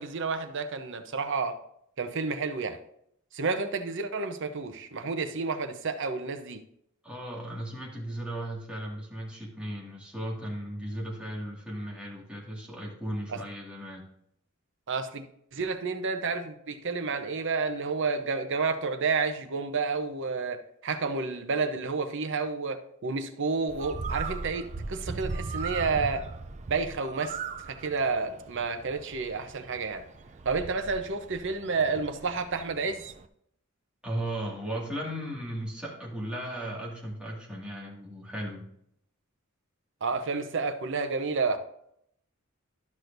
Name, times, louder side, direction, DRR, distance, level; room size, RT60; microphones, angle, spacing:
voice 1, 0.0-1.6 2.0-2.8 3.3-6.6 13.3-13.4 14.9-15.2 15.5-26.2 26.7-27.4 27.7-30.0 30.4-33.0 40.0-41.6, right 4 dB, 60° right, 8 dB, 0.8 m, -30 dB
voice 2, 7.0-14.0 34.0-38.6, right 1 dB, 5° right, -4 dB, 2.1 m, -36 dB
Bird, 23.7-33.3, right 4 dB, 35° right, 0.4 m, -39 dB
12.0 x 6.3 x 2.6 m, 0.71 s
head